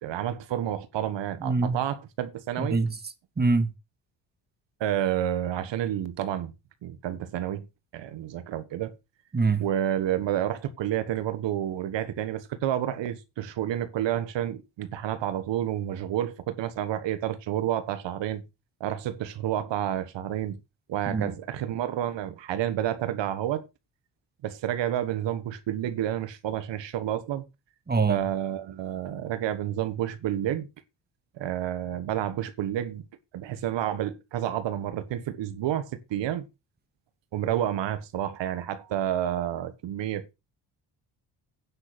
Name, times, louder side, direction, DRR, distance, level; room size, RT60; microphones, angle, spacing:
voice 1, 0.0-2.8 4.8-6.5 6.8-7.7 7.9-8.9 9.6-18.4 18.8-20.6 20.9-23.7 24.4-27.4 28.1-30.7 31.4-33.0 33.3-36.5 37.3-40.2, right 11 dB, 80° right, 1.5 m, -30 dB
voice 2, 1.4-1.8 2.6-3.0 3.4-3.7 9.3-9.7 21.1-21.3 27.9-28.3, right 3 dB, 20° right, 1.8 m, -24 dB
9.6 x 6.0 x 6.7 m
cardioid pair, 85°, 44 cm